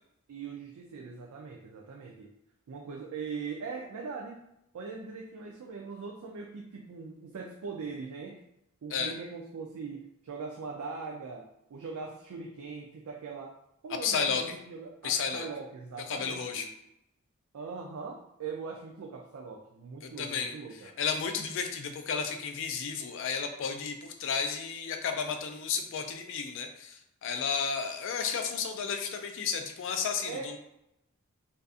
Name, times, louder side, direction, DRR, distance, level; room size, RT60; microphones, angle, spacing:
voice 1, 0.3-2.3 2.7-4.4 4.7-8.4 8.8-13.5 13.8-16.7 17.5-20.9 30.3-30.6, right 5 dB, 90° right, 0 dB, 0.4 m, -41 dB
voice 2, 13.9-14.4 15.0-15.5 16.1-16.7 20.0-20.5 21.0-30.6, left 6 dB, 60° left, 5 dB, 0.4 m, -32 dB
2.6 x 2.4 x 2.3 m, 0.82 s
head